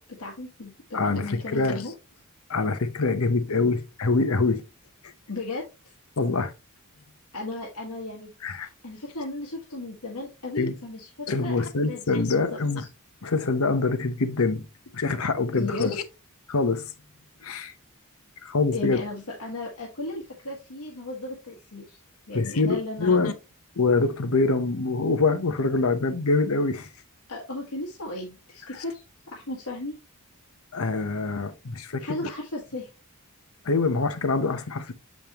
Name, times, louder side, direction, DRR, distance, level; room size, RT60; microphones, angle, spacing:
voice 1, 0.0-1.9 5.3-5.9 7.3-8.3 8.6-11.6 11.9-12.0 12.3-12.4 12.8-12.9 15.5-15.9 18.7-22.0 22.3-23.3 27.3-29.0 29.3-30.0 32.0-32.9, left 2 dB, 85° left, 1.6 m, -35 dB
voice 2, 0.9-1.8 2.5-4.6 6.2-6.5 8.4-8.7 10.5-10.7 11.3-12.8 13.2-14.7 14.9-16.0 16.5-16.8 17.4-17.7 18.4-19.0 22.3-23.3 23.8-26.9 30.7-32.3 33.6-34.9, left 3 dB, 65° left, 0.8 m, -25 dB
7.3 x 5.3 x 3.0 m
head